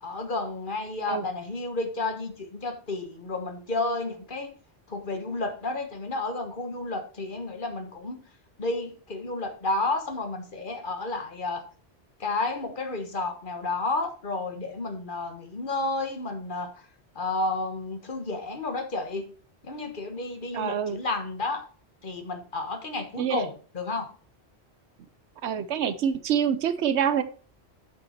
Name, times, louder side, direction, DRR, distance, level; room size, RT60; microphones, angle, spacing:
voice 1, 0.0-4.5 4.9-8.2 8.6-11.6 12.2-16.7 17.1-19.3 19.6-21.7 22.0-24.1, left 2 dB, 50° left, 1.4 m, -31 dB
voice 2, 20.5-21.0 23.2-23.4 25.4-27.2, right 8 dB, 90° right, 1.1 m, -26 dB
8.0 x 6.8 x 4.4 m
omnidirectional pair, 1.1 m